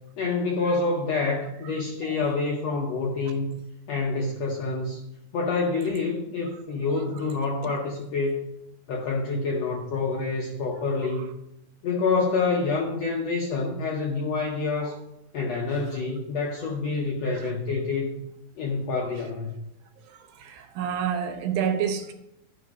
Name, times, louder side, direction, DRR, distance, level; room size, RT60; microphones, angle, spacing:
voice 1, 0.2-3.6 3.9-5.0 5.3-8.4 8.9-11.3 11.8-14.9 15.3-18.2 18.6-19.6, left 4 dB, 75° left, 1.5 m, -27 dB
voice 2, 19.0-19.3 20.0-22.1, right 8 dB, 80° right, 2.7 m, -31 dB
11.5 x 4.8 x 5.2 m
omnidirectional pair, 4.1 m